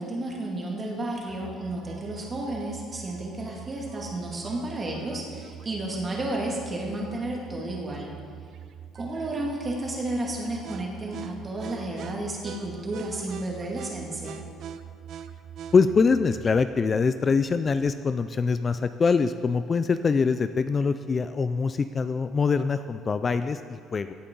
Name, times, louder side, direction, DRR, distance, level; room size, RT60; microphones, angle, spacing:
voice 1, 0.0-8.1 8.9-14.4, right 1 dB, 25° right, -2 dB, 2.3 m, -32 dB
sound 1, 1.3-16.6, right 9 dB, 60° right, 0.5 m, -43 dB
voice 2, 15.7-24.1, left 5 dB, 30° left, 11 dB, 0.3 m, -24 dB
16.5 x 8.4 x 3.9 m, 2.2 s
cardioid pair, 120°, 0 cm